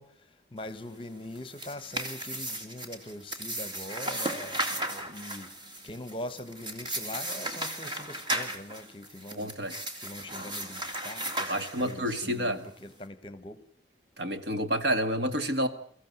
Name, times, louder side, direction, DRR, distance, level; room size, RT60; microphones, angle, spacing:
voice 1, 0.0-5.5 5.8-9.5 10.0-13.6, left 1 dB, 30° left, 1.1 m, -42 dB
sound 1, 1.3-12.2, right 1 dB, 25° right, 2.1 m, -35 dB
voice 2, 9.4-9.8 11.5-12.7 14.2-15.7, equal, 65° right, 1.7 m, -29 dB
23.5 x 15.0 x 9.3 m
head